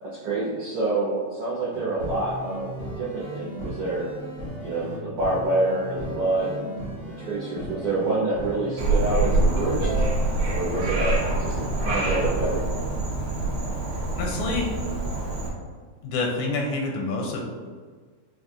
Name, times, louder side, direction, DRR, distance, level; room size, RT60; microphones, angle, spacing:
voice 1, 0.0-4.0 4.6-6.7 7.2-9.9 10.4-12.9, right 2 dB, 90° right, -9 dB, 1.1 m, -27 dB
sound 1, 1.7-12.6, right 1 dB, 60° left, 0.6 m, -36 dB
Frog, 8.8-15.5, right 2 dB, 65° right, 1.5 m, -25 dB
Ringtone, 9.3-10.5, right 1 dB, 50° right, 1.3 m, -33 dB
voice 2, 14.1-14.7 16.0-17.5, left 3 dB, 85° left, 0 dB, 2.0 m, -27 dB
5.4 x 2.4 x 2.4 m, 1.5 s
omnidirectional pair, 3.4 m